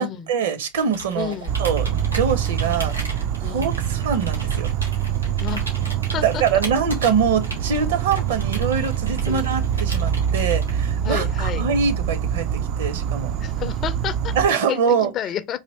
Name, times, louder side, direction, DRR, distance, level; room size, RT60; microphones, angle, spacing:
voice 1, 0.0-1.3 1.6-2.9 3.4-4.7 6.2-13.3 14.3-15.1, right 6 dB, 55° right, 0.7 m, -24 dB
Computer keyboard, 0.8-11.1, right 1 dB, 85° right, 1.6 m, -36 dB
voice 2, 1.1-1.5 3.4-3.7 5.4-5.6 6.1-6.4 9.3-9.5 11.0-11.7 13.4-14.3 14.7-14.8 15.1-15.6, left 9 dB, 30° left, 0.4 m, -30 dB
Insect, 1.5-14.5, right 9 dB, 40° right, 0.3 m, -25 dB
4.1 x 2.8 x 3.0 m
figure-of-eight pair, 90°, 0 cm